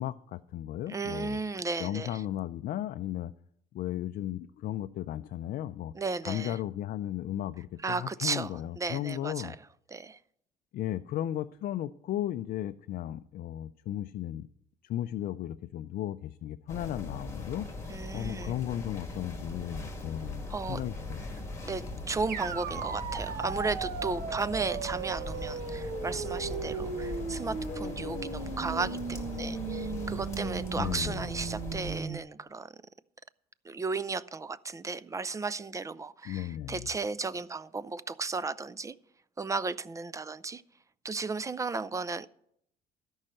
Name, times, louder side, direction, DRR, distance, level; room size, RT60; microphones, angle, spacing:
voice 1, 0.0-1.4 1.8-3.3 3.7-5.9 6.3-9.5 10.7-14.5 14.8-17.7 18.1-21.3 30.8-31.3 36.3-36.8, left 12 dB, 60° left, 0.4 m, -35 dB
voice 2, 0.9-2.2 5.9-6.6 7.8-9.6 9.9-10.2 17.9-18.5 20.5-20.9 21.6-32.8 33.6-38.9 39.4-40.6 41.0-42.3, right 4 dB, 20° right, 0.4 m, -35 dB
sound 1, 16.7-32.0, left 2 dB, 15° left, 2.2 m, -40 dB
sound 2, 22.3-32.2, right 6 dB, 60° right, 1.1 m, -37 dB
sound 3, 25.3-30.6, left 7 dB, 40° left, 1.1 m, -45 dB
13.0 x 5.4 x 7.6 m
cardioid pair, 110°, 17 cm